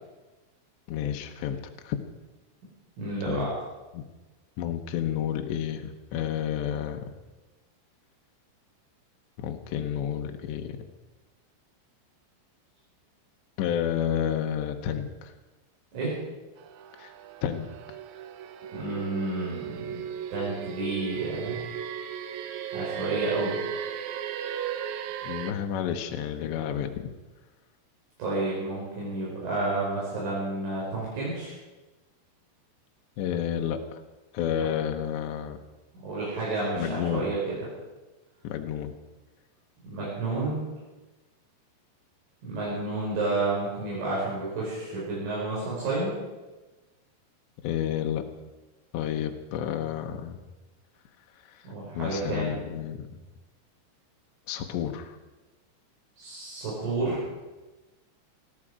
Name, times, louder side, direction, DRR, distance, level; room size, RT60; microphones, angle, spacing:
voice 1, 0.9-2.0 3.3-3.5 3.9-4.0 4.6-7.0 9.4-10.8 13.6-15.3 17.0-17.1 17.4-17.7 25.2-27.1 33.2-34.0 34.3-35.6 36.8-37.3 38.4-38.9 47.6-48.2 48.9-50.4 51.4-51.7 52.0-53.2 54.5-55.2, left 9 dB, 75° left, 4 dB, 2.8 m, -30 dB
voice 2, 3.0-3.5 15.9-16.2 18.7-20.0 20.3-21.7 22.7-23.6 28.2-31.5 35.9-37.6 39.8-40.6 42.4-46.1 51.6-52.5 56.2-57.2, right 2 dB, 70° right, -7 dB, 7.5 m, -30 dB
sound 1, 16.6-25.5, right 9 dB, 90° right, 3.7 m, -36 dB
21.0 x 14.0 x 4.9 m, 1.2 s
omnidirectional pair, 6.0 m